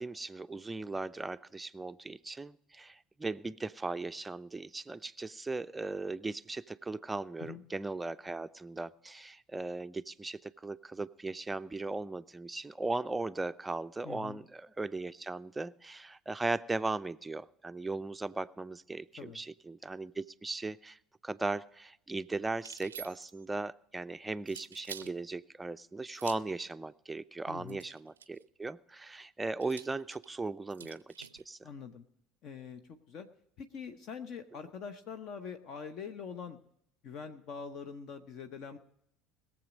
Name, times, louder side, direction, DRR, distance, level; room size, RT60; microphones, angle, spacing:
voice 1, 0.0-31.6, right 3 dB, 15° right, 12 dB, 0.4 m, -38 dB
voice 2, 14.0-14.4 19.2-19.4 27.5-27.8 31.6-32.0 32.4-33.3 33.6-36.6 37.0-38.8, left 6 dB, 45° left, 9 dB, 0.8 m, -44 dB
sound 1, 22.6-23.5 24.5-25.1 26.1-26.6 27.7-28.4 29.6-31.4, right 8 dB, 75° right, 0.4 m, -48 dB
21.0 x 7.3 x 5.1 m, 0.73 s
figure-of-eight pair, 65°, 0 cm